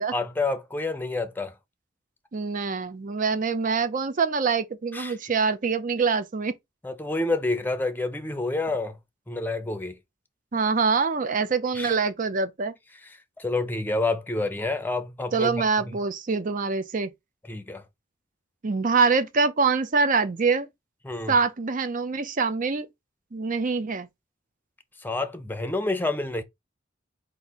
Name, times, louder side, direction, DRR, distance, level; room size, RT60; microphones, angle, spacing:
voice 1, 0.1-1.5 4.9-5.2 6.8-9.0 9.3-10.0 11.7-11.9 13.4-15.6 17.5-17.8 21.0-21.3 25.0-26.4, left 2 dB, 10° left, 0.6 m, -28 dB
voice 2, 2.3-6.5 10.5-12.7 15.3-17.1 18.6-20.7 21.3-22.9 23.3-24.1, right 4 dB, 45° right, 0.6 m, -24 dB
4.2 x 2.6 x 4.1 m
head